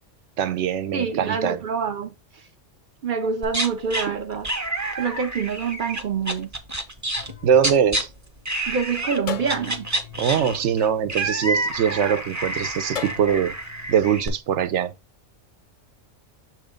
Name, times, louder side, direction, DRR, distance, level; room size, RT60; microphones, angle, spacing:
voice 1, 0.4-1.6 7.4-8.1 10.2-13.6 13.9-14.9, right 8 dB, 70° right, 0.9 m, -22 dB
voice 2, 0.9-2.1 3.0-4.5 5.0-6.5 8.7-9.9, right 6 dB, 55° right, 0.6 m, -26 dB
sound 1, 3.4-4.1 4.4-8.0 8.5-9.2 9.4-14.3, right 2 dB, 15° right, 0.8 m, -28 dB
sound 2, 7.2-8.6 9.3-11.8 12.9-14.3, left 7 dB, 55° left, 0.4 m, -38 dB
6.8 x 3.1 x 5.0 m
omnidirectional pair, 1.3 m